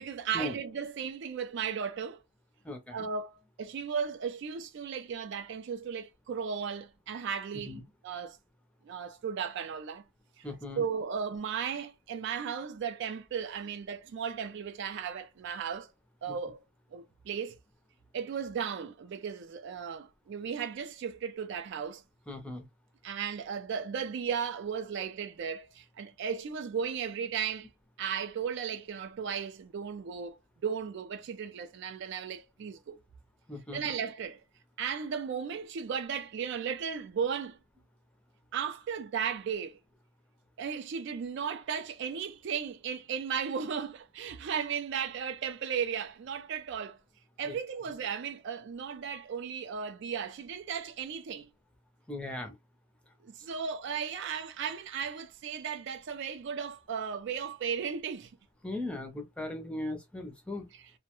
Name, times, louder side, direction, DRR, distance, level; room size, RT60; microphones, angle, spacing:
voice 1, 0.0-2.2 2.9-7.8 8.0-8.4 8.8-10.0 10.4-10.5 10.8-15.9 16.2-16.6 16.9-17.6 18.1-22.0 23.0-27.7 28.0-33.0 33.7-34.4 34.8-37.6 38.5-39.8 40.6-47.0 47.4-51.5 53.2-58.3 60.7-60.9, right 7 dB, 55° right, 0.3 m, -35 dB
voice 2, 2.6-3.0 7.6-7.8 10.4-10.8 22.3-22.7 33.5-33.8 47.5-47.6 52.1-52.5 58.6-60.6, left 1 dB, 5° left, 0.5 m, -38 dB
2.2 x 2.1 x 2.9 m
head